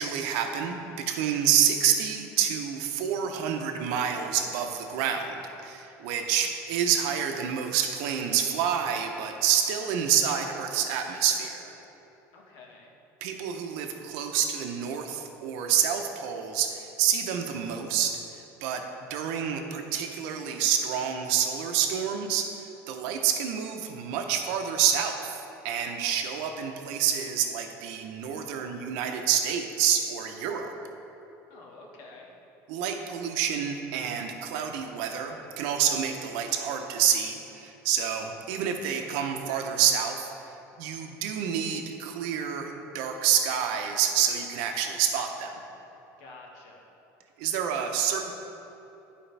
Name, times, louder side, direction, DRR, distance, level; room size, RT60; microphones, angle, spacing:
voice 1, 0.0-11.7 13.2-18.8 19.1-25.4 25.6-30.7 32.7-40.3 40.8-45.5 47.4-48.3, right 8 dB, 75° right, 4 dB, 0.7 m, -28 dB
voice 2, 12.3-12.9 31.5-32.3 46.2-46.9, left 3 dB, 70° left, -2 dB, 1.4 m, -49 dB
11.0 x 5.0 x 3.4 m, 3.0 s
cardioid pair, 165°, 7 cm